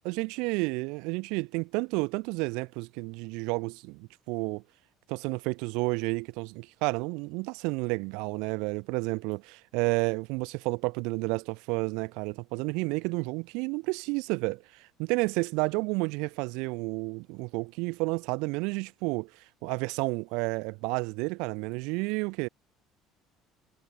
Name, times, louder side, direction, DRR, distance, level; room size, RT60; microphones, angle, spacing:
voice 1, 0.0-4.6 5.1-22.5, right 28 dB, 80° right, 4.0 m, -31 dB
cardioid pair, 140°, 0 cm